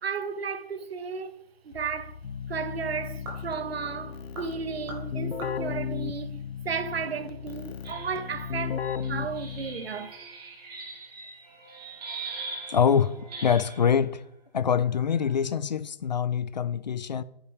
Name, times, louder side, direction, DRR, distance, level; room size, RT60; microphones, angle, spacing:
voice 1, 0.0-2.2 2.5-10.1, right 6 dB, 75° right, 1.2 m, -34 dB
Keyboard (musical), 1.7-10.0, left 7 dB, 85° left, 0.8 m, -35 dB
sound 1, 3.1-7.0, right 1 dB, 20° right, 3.3 m, -48 dB
sound 2, 7.8-14.1 14.9-15.5, right 4 dB, 40° right, 4.1 m, -42 dB
voice 2, 12.7-13.2 13.4-14.2 14.5-17.2, left 7 dB, 45° left, 0.4 m, -24 dB
10.0 x 9.8 x 3.4 m
hypercardioid pair, 170°, 31 cm